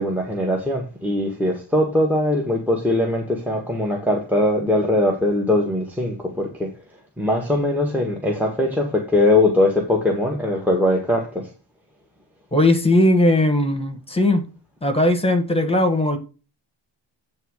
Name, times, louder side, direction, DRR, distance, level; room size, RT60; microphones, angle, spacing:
voice 1, 0.0-6.7 7.2-11.5, left 1 dB, 5° right, 1.5 m, -21 dB
voice 2, 12.5-14.4 14.8-16.2, left 1 dB, 10° left, 1.6 m, -18 dB
9.1 x 3.6 x 6.4 m
wide cardioid pair, 130°, 48 cm